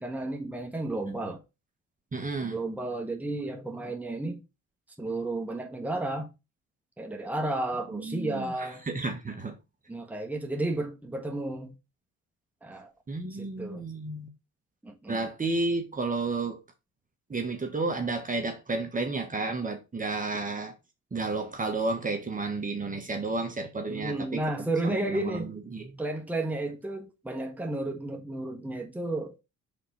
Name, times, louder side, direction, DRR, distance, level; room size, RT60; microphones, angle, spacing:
voice 1, 0.0-1.4 2.4-4.4 5.0-6.3 7.0-8.8 9.9-11.7 12.6-12.9 13.4-13.8 14.8-15.3 23.9-25.5 26.0-29.4, right 2 dB, 5° right, 1.3 m, -32 dB
voice 2, 2.1-2.6 7.9-9.6 13.1-14.3 15.1-16.6 17.3-20.7 21.1-25.9, right 3 dB, 25° right, 1.3 m, -32 dB
5.1 x 4.0 x 5.7 m
cardioid pair, 90°, 30 cm